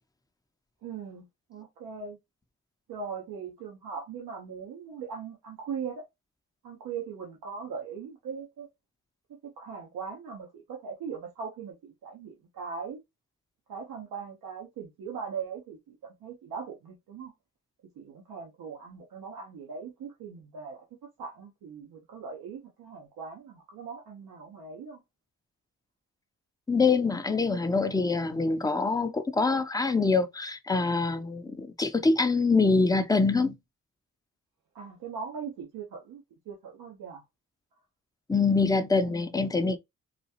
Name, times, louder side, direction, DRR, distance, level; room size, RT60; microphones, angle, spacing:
voice 1, 0.8-2.2 2.9-6.0 6.6-8.7 9.3-13.0 13.7-17.3 18.0-25.0 34.7-37.2 39.1-39.3, right 6 dB, 85° right, 1.0 m, -40 dB
voice 2, 26.7-33.6 38.3-39.8, left 4 dB, 10° left, 0.6 m, -25 dB
4.0 x 2.3 x 2.8 m
cardioid pair, 65°, 35 cm